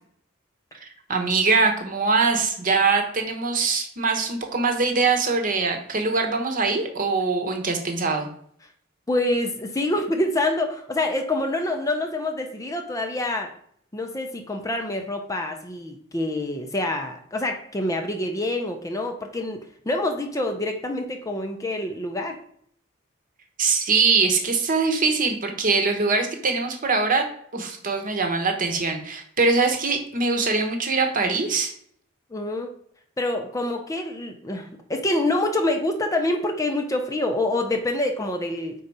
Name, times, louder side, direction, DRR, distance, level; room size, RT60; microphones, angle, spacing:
voice 1, 1.1-8.3 23.6-27.3 27.5-31.7, right 4 dB, 40° right, 4 dB, 0.9 m, -22 dB
voice 2, 9.1-13.5 13.9-19.6 19.9-22.4 32.3-32.7 33.2-38.7, left 1 dB, 15° left, 4 dB, 0.5 m, -26 dB
4.6 x 3.9 x 5.3 m, 0.63 s
head